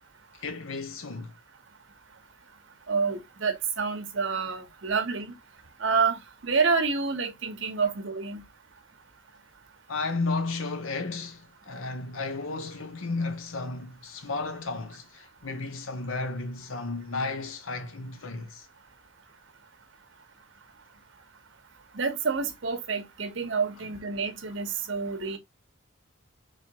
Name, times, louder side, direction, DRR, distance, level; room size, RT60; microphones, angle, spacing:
voice 1, 0.3-1.3 9.9-18.7, left 3 dB, 80° left, 0.8 m, -33 dB
voice 2, 2.9-5.3 5.8-8.4 21.9-25.4, right 5 dB, 60° right, 1.0 m, -28 dB
4.3 x 3.1 x 2.8 m
head